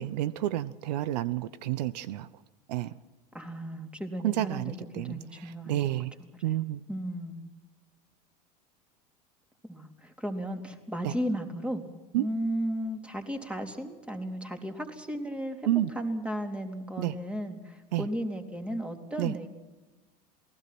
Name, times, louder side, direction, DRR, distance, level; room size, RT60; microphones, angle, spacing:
voice 1, 0.0-2.3 2.7-2.9 4.2-6.1 6.4-6.8 11.0-11.1 12.1-12.3 15.7-15.9 17.0-17.1 17.9-18.1 19.2-19.3, right 14 dB, 75° right, 17 dB, 0.9 m, -30 dB
voice 2, 3.3-5.9 6.2-6.6 6.9-7.4 9.7-11.8 12.2-15.6 15.9-19.5, equal, 5° right, 4 dB, 3.8 m, -35 dB
28.0 x 19.5 x 6.1 m, 1.2 s
hypercardioid pair, 90°, 21 cm